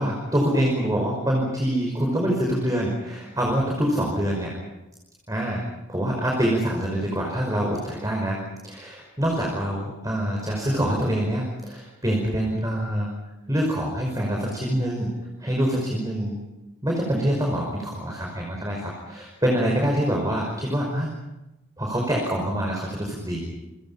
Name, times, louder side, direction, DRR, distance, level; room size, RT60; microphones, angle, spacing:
voice 1, 0.0-4.5 5.3-5.6 5.9-8.4 8.6-13.1 13.5-15.1 15.4-16.4 16.8-21.1 21.8-23.5, equal, 15° right, -1 dB, 5.3 m, -25 dB
29.0 x 26.0 x 5.7 m, 0.99 s
head